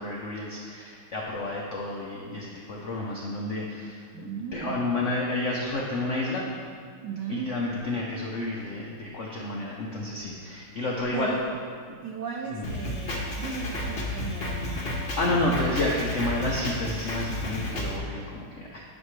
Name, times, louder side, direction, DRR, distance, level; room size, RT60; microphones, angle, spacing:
voice 1, 0.0-6.5 7.3-11.3 12.5-12.7 15.2-18.8, left 2 dB, 75° left, -3 dB, 0.6 m, -30 dB
voice 2, 4.1-4.8 7.0-7.6 11.1-11.6 12.0-14.8, right 6 dB, 80° right, 2 dB, 0.9 m, -36 dB
Drum kit, 12.6-18.0, left 1 dB, 45° left, 0.8 m, -32 dB
11.0 x 6.2 x 3.2 m, 2.1 s
omnidirectional pair, 2.4 m